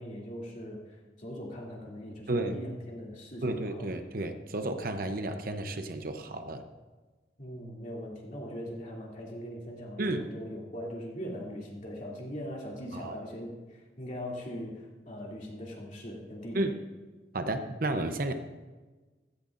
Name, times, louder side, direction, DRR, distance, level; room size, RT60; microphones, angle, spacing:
voice 1, 0.0-3.9 7.4-16.7, equal, 45° left, -3 dB, 2.9 m, -41 dB
voice 2, 3.4-6.6 10.0-10.3 12.9-13.2 16.5-16.8 17.3-18.3, right 2 dB, 55° right, 7 dB, 0.8 m, -32 dB
16.0 x 14.5 x 2.6 m, 1.3 s
head